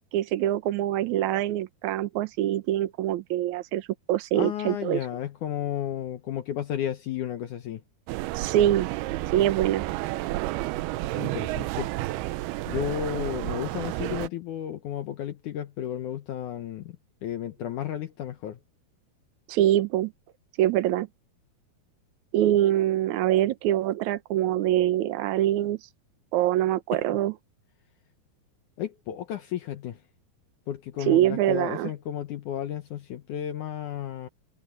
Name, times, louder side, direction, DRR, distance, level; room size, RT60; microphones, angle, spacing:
voice 1, 0.1-5.0 8.3-8.9 9.3-9.9 19.5-20.1 20.6-21.1 22.3-25.8 26.3-27.3 31.1-31.9, right 13 dB, 70° right, 1.9 m, -24 dB
voice 2, 4.3-7.8 11.2-11.9 12.7-17.0 17.2-18.6 26.9-27.0 28.8-30.0 30.7-34.3, left 10 dB, 70° left, 2.0 m, -33 dB
sound 1, 8.1-14.3, right 17 dB, 90° right, 2.6 m, -31 dB
omnidirectional pair, 4.5 m